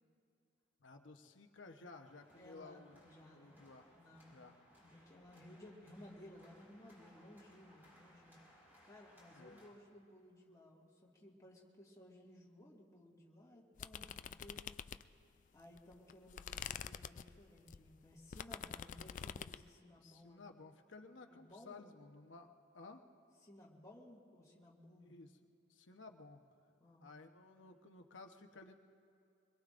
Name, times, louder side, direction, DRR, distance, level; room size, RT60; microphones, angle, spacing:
voice 1, 0.8-3.0 3.3-3.9 4.3-4.6 9.3-9.7 20.0-23.0 25.0-25.3 25.7-26.4 27.0-28.7, left 3 dB, 75° left, 5 dB, 1.0 m, -56 dB
sound 1, 2.0-9.7, equal, 10° right, 5.2 m, -65 dB
voice 2, 2.4-3.6 3.9-4.5 4.8-8.4 8.8-14.7 15.5-20.4 21.3-21.8 23.4-25.1 26.8-27.1, left 1 dB, 20° left, -4 dB, 2.1 m, -59 dB
sound 2, 13.8-15.3 15.7-19.7, left 8 dB, 45° left, 0.3 m, -47 dB
25.0 x 21.5 x 2.6 m, 2.6 s
head